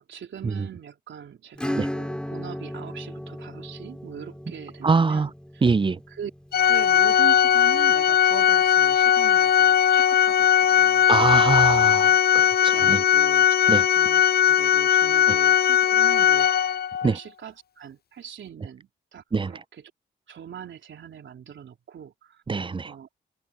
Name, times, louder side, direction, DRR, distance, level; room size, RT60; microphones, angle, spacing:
voice 1, 0.0-5.7 6.1-6.3 6.7-11.1 12.0-12.1 12.5-19.9 20.3-22.4 22.8-23.1, right 8 dB, 70° right, 3.7 m, -41 dB
Acoustic guitar / Strum, 1.6-7.8, equal, 5° left, 5.3 m, -36 dB
voice 2, 4.8-5.3 5.6-6.0 11.1-13.0 13.7-13.8 15.3-15.4 17.0-17.1 19.3-19.5 22.5-22.9, right 4 dB, 25° right, 0.5 m, -23 dB
Organ, 6.5-17.1, left 10 dB, 50° left, 0.5 m, -19 dB
supercardioid pair, 45°, 21 cm